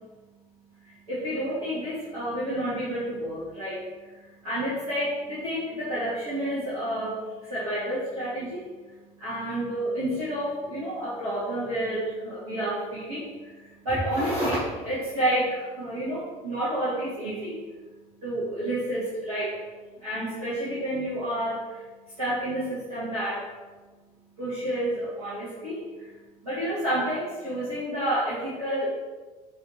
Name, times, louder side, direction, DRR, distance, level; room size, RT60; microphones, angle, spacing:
voice 1, 0.8-3.9 4.4-8.7 9.2-13.5 13.8-17.5 18.2-19.6 20.0-21.8 22.2-23.5 24.4-25.8 26.4-28.9, right 1 dB, 80° right, -11 dB, 2.1 m, -29 dB
8.0 x 3.4 x 4.3 m, 1.3 s
figure-of-eight pair, 55°, 19 cm